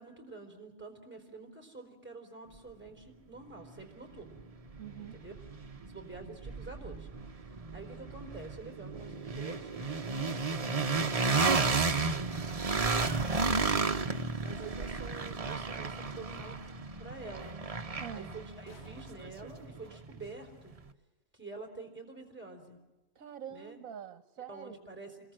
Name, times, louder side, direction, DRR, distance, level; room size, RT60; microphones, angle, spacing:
voice 1, 0.0-4.4 5.0-5.3 5.8-7.1 7.6-12.0 12.6-16.6 17.0-17.6 18.1-20.7 21.3-22.8 23.5-23.8 24.5-25.3, right 3 dB, 5° right, 4 dB, 4.1 m, -48 dB
sound 1, 3.8-3.9 4.3-20.3, right 4 dB, 30° right, 0.8 m, -33 dB
voice 2, 4.8-5.2 18.0-18.3 23.1-24.8, right 9 dB, 65° right, 12 dB, 1.5 m, -45 dB
sound 2, 18.7-20.4 23.3-23.4, left 1 dB, 60° left, 3.9 m, -61 dB
27.5 x 22.0 x 7.7 m, 1.1 s
omnidirectional pair, 1.6 m